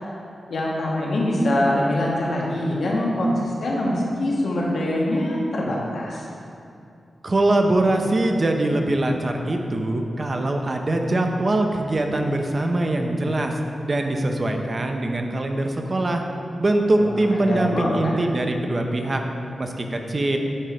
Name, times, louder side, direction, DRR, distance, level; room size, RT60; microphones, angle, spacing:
voice 1, 0.5-6.3 17.0-18.2, left 1 dB, 75° left, -3 dB, 1.1 m, -24 dB
voice 2, 7.2-13.5 13.8-16.2 16.6-19.2 19.6-20.4, right 2 dB, 45° right, 3 dB, 0.7 m, -22 dB
9.7 x 3.7 x 3.4 m, 2.6 s
cardioid pair, 50°, 0 cm